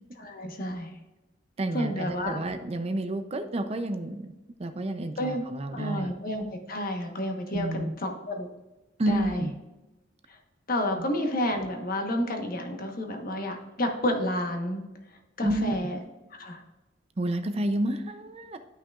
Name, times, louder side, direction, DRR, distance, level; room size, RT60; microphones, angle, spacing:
voice 1, 0.2-0.9 1.7-2.5 5.2-5.4 5.7-8.5 9.1-9.5 10.3-10.4 10.7-14.8 15.4-16.0 16.3-16.6, left 1 dB, 50° left, 4 dB, 1.1 m, -30 dB
voice 2, 1.6-4.3 4.6-6.2 7.5-7.9 9.0-9.6 11.0-11.1 15.4-15.8 17.2-18.6, right 1 dB, 30° right, 9 dB, 0.5 m, -30 dB
12.0 x 5.7 x 2.4 m, 1.1 s
head